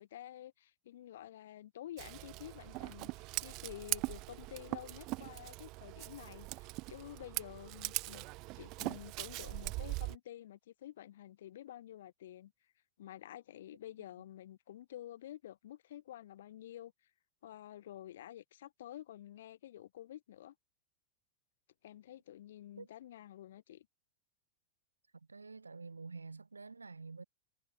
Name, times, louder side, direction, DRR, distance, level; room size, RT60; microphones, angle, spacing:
voice 1, 0.0-8.3 8.6-12.5 13.0-16.9 17.4-20.5 21.8-23.9, left 12 dB, 60° left, 2.8 m, -50 dB
Scissors, 2.0-10.2, right 23 dB, 40° right, 1.8 m, -41 dB
voice 2, 25.1-27.2, right 4 dB, 80° right, 7.9 m, -48 dB
figure-of-eight pair, 90°, 0 cm